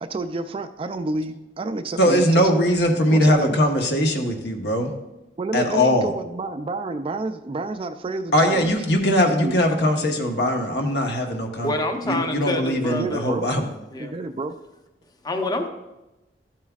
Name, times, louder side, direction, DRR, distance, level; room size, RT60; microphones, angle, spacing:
voice 1, 0.0-2.7 3.1-3.6 5.4-8.7 9.3-9.6 12.9-13.5 14.0-14.5, right 2 dB, 30° right, 9 dB, 0.3 m, -29 dB
voice 2, 2.0-4.9 5.5-6.1 8.3-11.7 12.0-13.7, equal, 65° left, 3 dB, 1.1 m, -20 dB
voice 3, 11.6-13.4 13.9-14.1 15.2-15.7, left 2 dB, 25° left, 5 dB, 0.7 m, -27 dB
13.0 x 7.3 x 2.4 m, 0.99 s
head